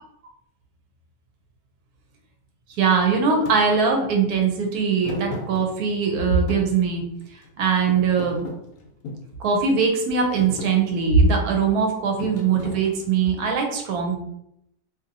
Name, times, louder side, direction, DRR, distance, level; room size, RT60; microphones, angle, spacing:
voice 1, 2.8-7.0 7.6-8.5 9.4-14.2, right 5 dB, 75° right, 2 dB, 1.1 m, -21 dB
Thump thud, 3.5-3.6 5.0-6.1 6.5-7.5 7.9-9.3 9.9-10.1 10.4-10.8 12.2-13.3, left 2 dB, 70° left, 1.0 m, -35 dB
2.7 x 2.7 x 2.6 m, 0.77 s
omnidirectional pair, 1.7 m